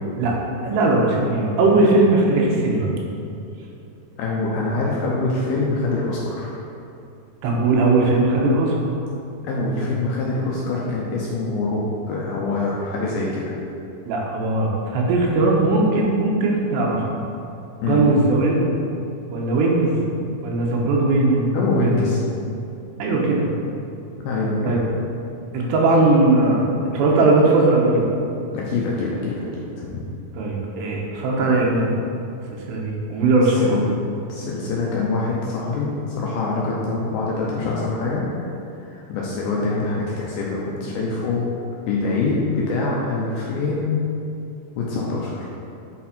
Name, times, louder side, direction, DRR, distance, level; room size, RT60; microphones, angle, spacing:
voice 1, 0.2-2.9 7.4-8.8 14.1-17.1 17.8-18.7 19.3-20.0 20.4-22.0 23.0-23.5 24.7-24.8 25.5-26.7 26.9-28.0 30.4-31.9 32.7-33.8, right 2 dB, 80° right, -2 dB, 3.1 m, -19 dB
voice 2, 4.2-6.6 9.4-13.5 17.8-18.1 21.5-22.2 24.2-24.9 28.5-30.0 33.5-33.9 34.3-38.2 38.8-41.4 41.9-44.0 44.8-45.5, left 3 dB, 80° left, -4 dB, 2.3 m, -24 dB
8.2 x 4.3 x 4.3 m, 2.6 s
omnidirectional pair, 4.9 m